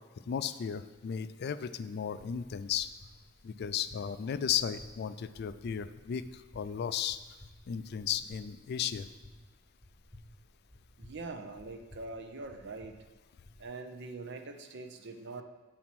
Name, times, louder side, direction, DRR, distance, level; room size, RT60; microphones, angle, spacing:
voice 1, 0.3-2.9 3.4-7.2 7.7-9.1, left 8 dB, 50° left, 13 dB, 0.3 m, -35 dB
sound 1, 2.7-13.6, left 1 dB, 5° left, 1.0 m, -56 dB
voice 2, 11.0-13.0 13.6-15.4, right 3 dB, 55° right, 6 dB, 0.7 m, -43 dB
7.6 x 4.3 x 5.9 m, 1.3 s
head